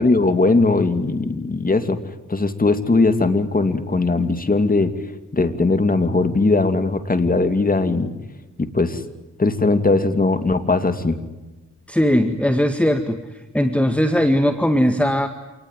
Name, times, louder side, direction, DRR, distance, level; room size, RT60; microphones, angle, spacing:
voice 1, 0.0-2.0 2.3-4.9 5.3-8.1 8.6-9.0 9.4-11.2, left 3 dB, 30° left, 9 dB, 2.7 m, -19 dB
voice 2, 11.9-13.2 13.5-15.3, equal, 5° left, 7 dB, 1.9 m, -18 dB
27.0 x 20.0 x 9.4 m, 1.1 s
cardioid pair, 65°, 31 cm